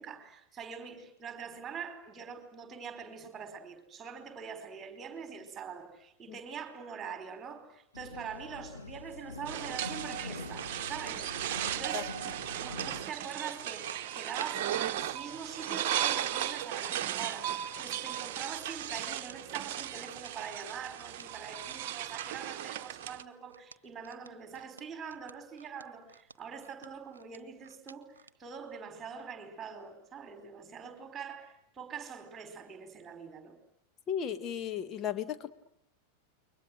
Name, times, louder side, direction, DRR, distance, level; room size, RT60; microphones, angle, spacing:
voice 1, 0.0-33.6, right 6 dB, 20° right, 4.8 m, -44 dB
sound 1, 7.9-13.1, left 3 dB, 80° left, 1.2 m, -45 dB
sound 2, 9.5-23.2, right 11 dB, 50° right, 1.1 m, -36 dB
sound 3, 10.0-14.7 15.6-28.4 28.8-29.0, right 5 dB, 70° right, 1.0 m, -52 dB
voice 2, 34.1-35.5, left 9 dB, 30° left, 1.6 m, -35 dB
29.5 x 23.0 x 7.8 m
figure-of-eight pair, 90°, 0 cm